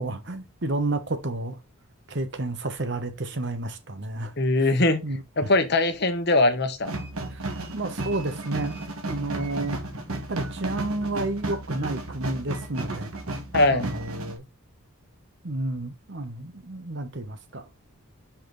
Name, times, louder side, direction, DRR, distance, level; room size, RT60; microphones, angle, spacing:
voice 1, 0.0-1.6 2.1-4.7 5.0-5.5 7.3-7.4 7.7-8.8 9.0-9.8 10.3-13.1 13.7-14.4 15.4-17.7, right 2 dB, 55° right, 1.1 m, -31 dB
voice 2, 4.4-5.0 5.4-6.9 13.5-13.9, left 2 dB, 50° left, 1.1 m, -21 dB
sound 1, 6.8-14.4, right 2 dB, 80° right, 1.6 m, -33 dB
5.8 x 5.0 x 4.0 m
head